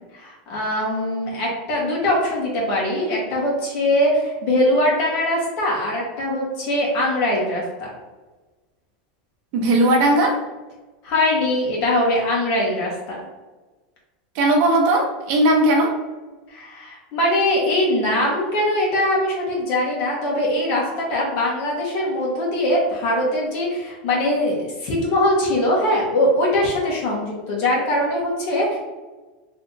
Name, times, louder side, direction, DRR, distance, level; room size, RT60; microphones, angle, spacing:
voice 1, 0.1-7.9 11.0-13.2 16.5-28.8, left 1 dB, 45° left, -3 dB, 1.5 m, -22 dB
voice 2, 9.5-10.4 14.3-15.9, right 1 dB, 45° right, 1 dB, 0.8 m, -17 dB
3.4 x 2.8 x 3.8 m, 1.2 s
supercardioid pair, 165°, 5 cm